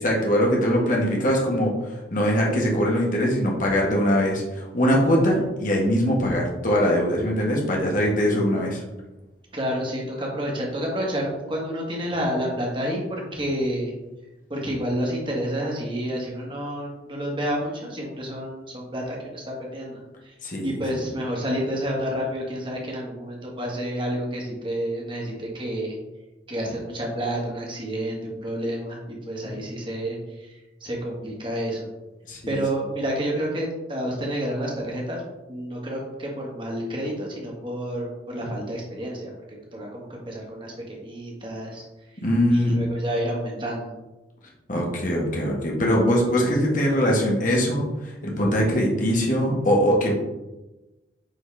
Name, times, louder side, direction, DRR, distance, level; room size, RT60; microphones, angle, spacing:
voice 1, 0.0-8.8 20.4-21.0 29.4-29.5 32.3-32.6 42.2-42.7 44.7-50.1, equal, 45° left, -2 dB, 1.6 m, -22 dB
voice 2, 9.5-13.9 14.5-20.3 20.6-26.0 26.5-31.9 32.5-35.2 35.5-39.3 39.7-41.9 42.5-43.9, equal, 25° right, -2 dB, 1.6 m, -29 dB
8.9 x 4.1 x 3.5 m, 1.0 s
head